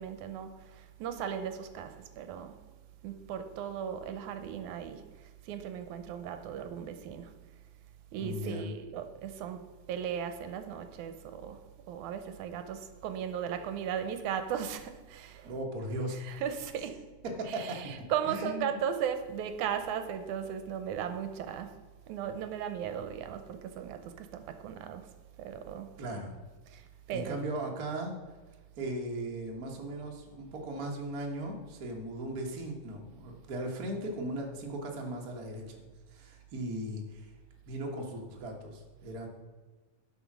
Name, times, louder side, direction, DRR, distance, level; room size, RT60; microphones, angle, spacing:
voice 1, 0.0-2.6 3.0-7.3 8.1-9.6 9.9-15.6 16.1-17.0 17.4-21.7 22.1-25.1 25.4-26.0 26.7-27.4, right 8 dB, 80° right, 9 dB, 2.0 m, -37 dB
voice 2, 8.2-8.7 15.4-16.2 17.4-17.8 18.2-18.8 26.0-26.4 27.1-28.1 28.8-35.8 36.1-37.3 37.7-39.3, right 1 dB, 45° right, 1 dB, 1.3 m, -37 dB
11.5 x 5.6 x 6.1 m, 1.3 s
omnidirectional pair, 3.5 m